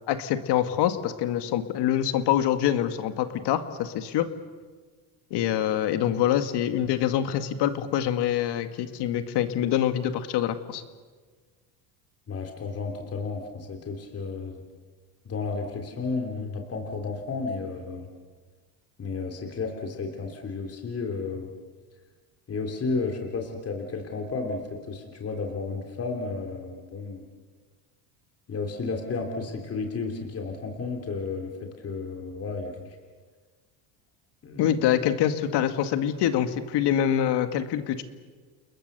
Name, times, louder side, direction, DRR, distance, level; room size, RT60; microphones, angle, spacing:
voice 1, 0.1-4.3 5.3-10.8 34.6-38.0, left 10 dB, 60° left, 9 dB, 2.0 m, -25 dB
voice 2, 12.3-14.6 15.3-18.1 19.0-21.5 22.5-27.2 28.5-32.7 34.4-34.8, left 4 dB, 30° left, 2 dB, 3.3 m, -32 dB
29.5 x 21.0 x 6.8 m, 1.5 s
cardioid pair, 115°, 45 cm